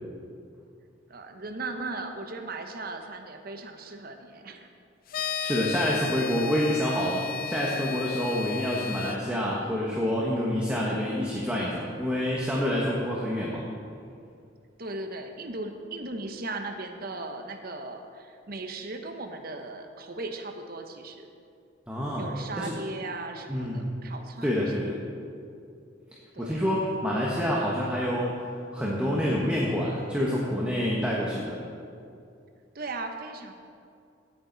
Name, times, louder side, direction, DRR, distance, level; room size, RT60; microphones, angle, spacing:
voice 1, 1.1-4.7 14.8-21.3 22.2-24.7 26.3-26.6 32.7-33.5, right 2 dB, 50° right, 5 dB, 1.0 m, -37 dB
sound 1, 5.1-9.2, left 7 dB, 50° left, 0.5 m, -34 dB
voice 2, 5.4-13.6 21.9-22.3 22.6-22.7 23.5-23.9 24.4-24.9 26.4-28.4 28.7-31.6, equal, 5° right, -5 dB, 1.2 m, -27 dB
17.0 x 8.9 x 4.0 m, 2.4 s
head